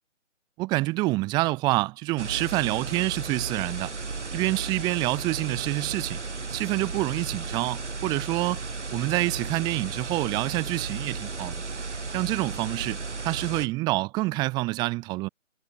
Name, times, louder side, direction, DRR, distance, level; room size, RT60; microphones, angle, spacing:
voice 1, 0.6-3.9 4.3-6.2 6.5-8.6 8.9-11.6 12.1-15.3, right 21 dB, 10° right, 6.4 m, -27 dB
sound 1, 2.2-13.7, right 4 dB, 65° right, 8.0 m, -34 dB
figure-of-eight pair, 165°, 38 cm